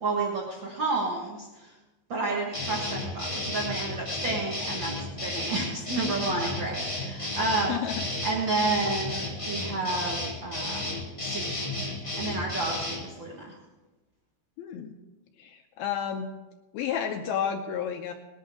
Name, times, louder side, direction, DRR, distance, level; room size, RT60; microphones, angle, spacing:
voice 1, 0.0-1.7 2.1-4.9 5.2-7.7 8.2-10.9 11.2-13.5, right 3 dB, 65° right, -4 dB, 1.2 m, -31 dB
sound 1, 2.5-13.0, left 1 dB, 10° left, 1.5 m, -33 dB
voice 2, 7.7-8.1 14.6-15.0 15.4-16.3 16.7-18.1, left 8 dB, 80° left, 5 dB, 2.3 m, -31 dB
20.0 x 11.0 x 3.7 m, 1.1 s
omnidirectional pair, 5.0 m